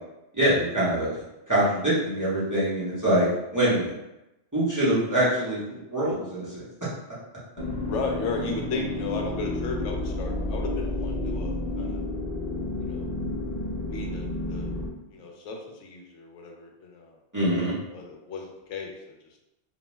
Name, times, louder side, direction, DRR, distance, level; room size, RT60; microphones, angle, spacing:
voice 1, 0.3-1.2 1.5-3.9 4.5-6.7 17.3-17.7, right 1 dB, 20° right, -10 dB, 0.8 m, -24 dB
sound 1, 7.6-14.9, left 2 dB, 45° left, 0.7 m, -31 dB
voice 2, 7.8-12.1 12.8-13.1 13.9-14.7 15.1-17.2 17.9-19.4, left 3 dB, 75° left, 1 dB, 0.9 m, -35 dB
2.6 x 2.1 x 3.0 m, 0.91 s
omnidirectional pair, 1.2 m